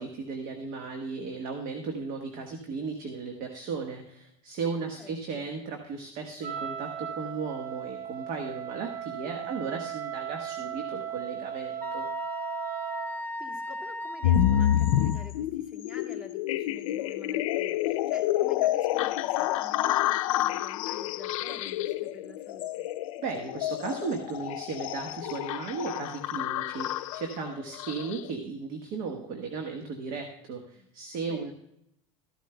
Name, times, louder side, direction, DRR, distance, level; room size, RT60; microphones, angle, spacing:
voice 1, 0.0-12.1 23.2-31.5, right 4 dB, 60° right, 4 dB, 1.3 m, -36 dB
voice 2, 4.9-5.5 9.4-9.6 13.4-22.9 30.7-30.9 31.3-31.5, left 3 dB, 5° right, 2 dB, 2.5 m, -48 dB
Wind instrument woodwind instrument, 6.4-13.2, right 9 dB, 80° right, 1.5 m, -37 dB
Wind instrument woodwind instrument 2, 11.8-15.3, left 1 dB, 10° left, 0.5 m, -37 dB
sound 1, 14.2-28.3, left 12 dB, 85° left, 0.4 m, -28 dB
14.0 x 11.5 x 2.2 m, 0.77 s
supercardioid pair, 105°, 17 cm